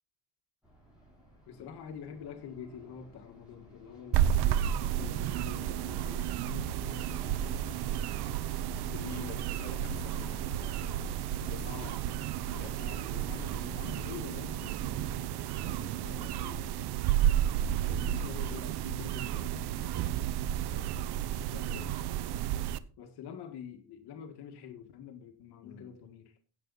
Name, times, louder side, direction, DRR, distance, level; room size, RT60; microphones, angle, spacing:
sound 1, 0.6-16.5, right 1 dB, ahead, 7.9 m, -54 dB
voice 1, 1.5-7.8 8.8-9.4 11.6-12.0 12.8-16.9 17.7-20.2 21.5-21.9 23.0-26.4, left 7 dB, 85° left, 1.8 m, -47 dB
sound 2, 4.1-22.8, right 10 dB, 85° right, 0.8 m, -32 dB
voice 2, 9.1-11.0 11.3-11.9 12.5-12.8 20.7-21.8 25.6-26.0, left 6 dB, 45° left, 2.4 m, -51 dB
16.0 x 7.6 x 4.1 m
cardioid pair, 145°, 38 cm